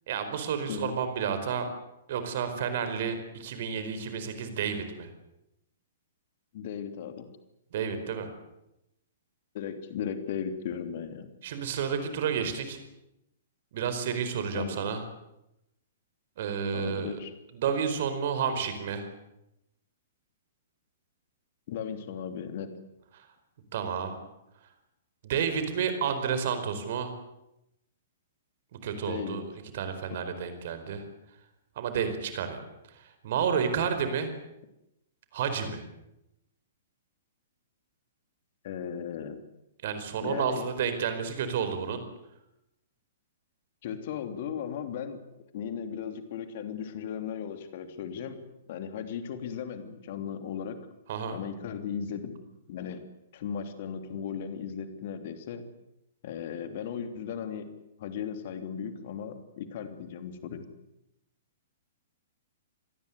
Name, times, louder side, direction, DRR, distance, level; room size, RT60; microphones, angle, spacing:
voice 1, 0.1-1.7 2.1-5.1 7.7-8.3 11.4-12.8 13.7-15.0 16.4-17.2 17.5-19.1 23.1-23.3 23.7-24.1 25.2-27.1 28.7-29.4 29.7-31.0 31.8-32.6 32.9-34.3 35.3-35.8 39.8-42.0 51.1-51.4, right 7 dB, 50° right, 9 dB, 4.6 m, -31 dB
voice 2, 6.5-7.3 9.5-11.3 14.5-15.0 16.7-17.3 21.7-22.7 29.1-29.4 30.1-30.2 38.6-39.4 40.2-40.7 43.8-45.2 45.5-50.8 51.3-52.4 52.7-53.0 53.3-55.7 56.2-57.7 58.0-60.7, left 7 dB, 45° left, 8 dB, 3.1 m, -36 dB
26.0 x 20.0 x 8.1 m, 0.87 s
figure-of-eight pair, 110°, 0 cm